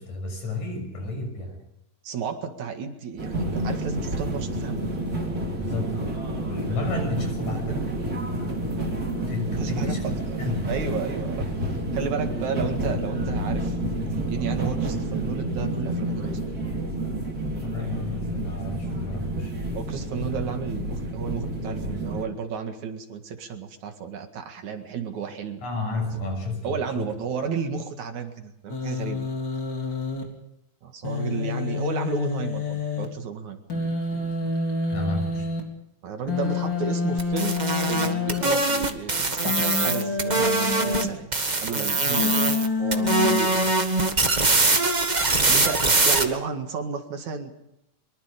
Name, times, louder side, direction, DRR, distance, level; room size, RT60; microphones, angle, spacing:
voice 1, 0.0-1.6 5.6-6.2 6.5-7.9 9.3-10.7 17.6-19.5 25.6-27.1 33.7-34.5 34.9-35.5, left 2 dB, 65° left, 3 dB, 8.1 m, -32 dB
voice 2, 2.0-4.9 9.5-10.4 10.7-16.4 19.7-25.7 26.6-29.3 30.8-33.6 36.0-37.6 37.9-41.3 41.6-42.5 42.8-43.7 45.5-47.6, right 6 dB, 65° right, 5 dB, 3.2 m, -32 dB
sound 1, 3.2-22.3, right 1 dB, 30° right, 3.9 m, -29 dB
Human voice, 28.7-30.2 31.0-33.1 33.7-35.6 36.3-38.4 39.5-41.1 42.2-43.4, left 4 dB, 35° left, 4.1 m, -27 dB
sound 2, 37.2-41.0 41.3-42.7 42.9-46.2, right 3 dB, 50° right, 0.5 m, -22 dB
24.0 x 23.0 x 5.2 m, 0.84 s
omnidirectional pair, 3.7 m